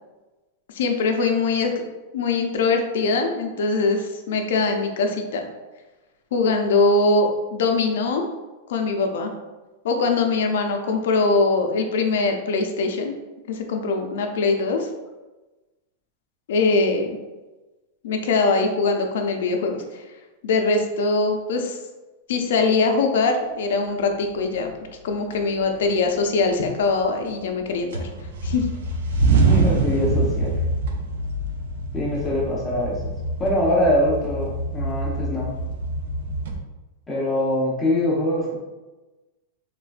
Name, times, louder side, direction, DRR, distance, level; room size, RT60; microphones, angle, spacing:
voice 1, 0.7-1.7 2.1-5.4 6.3-8.3 8.7-9.3 9.8-13.2 13.5-14.9 16.5-17.2 18.0-20.0 20.4-21.8 22.3-24.7 25.0-28.1 28.4-28.7, left 3 dB, 75° left, 4 dB, 0.4 m, -22 dB
sound 1, 24.7-24.8 25.3-26.0 26.4-27.6 27.9-36.6, right 2 dB, 75° right, 0.4 m, -25 dB
voice 2, 29.4-30.6 31.9-33.1 33.4-35.5 37.1-38.5, left 1 dB, 10° left, -5 dB, 0.6 m, -23 dB
3.1 x 2.1 x 2.4 m, 1.1 s
supercardioid pair, 155°, 0 cm